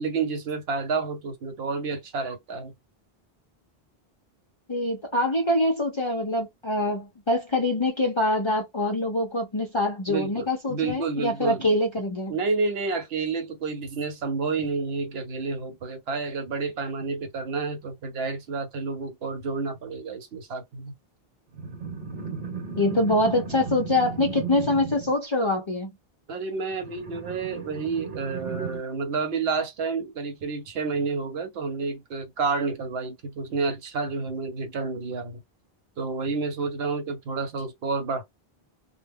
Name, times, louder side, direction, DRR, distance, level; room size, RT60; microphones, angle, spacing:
voice 1, 0.0-2.7 10.1-11.7 12.3-20.9 26.3-35.4 36.0-38.2, right 4 dB, 75° right, 0.9 m, -30 dB
voice 2, 4.7-12.3 22.8-25.9, left 1 dB, 45° left, 0.4 m, -24 dB
sound 1, 21.5-25.1 26.7-28.8, right 5 dB, 55° right, 1.0 m, -35 dB
2.2 x 2.0 x 3.4 m
omnidirectional pair, 1.0 m